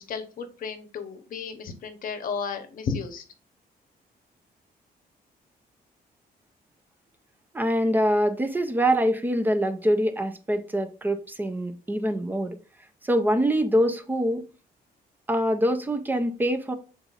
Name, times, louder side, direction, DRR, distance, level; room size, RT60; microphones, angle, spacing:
voice 1, 0.0-3.2, left 5 dB, 55° left, 0.9 m, -33 dB
voice 2, 7.5-12.6 13.0-14.4 15.3-16.7, equal, 10° right, 0.5 m, -24 dB
5.6 x 3.9 x 2.4 m
cardioid pair, 155°, 17 cm